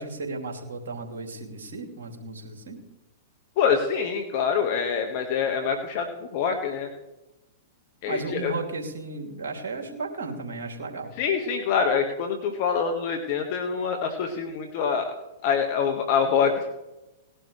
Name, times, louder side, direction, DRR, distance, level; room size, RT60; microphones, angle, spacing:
voice 1, 0.0-2.8 8.1-11.1, right 3 dB, 70° right, 2 dB, 2.8 m, -34 dB
voice 2, 3.6-6.9 8.0-8.5 11.2-15.1 15.4-16.7, left 6 dB, 50° left, 5 dB, 1.6 m, -25 dB
18.5 x 11.5 x 3.3 m, 0.96 s
hypercardioid pair, 105°, 0 cm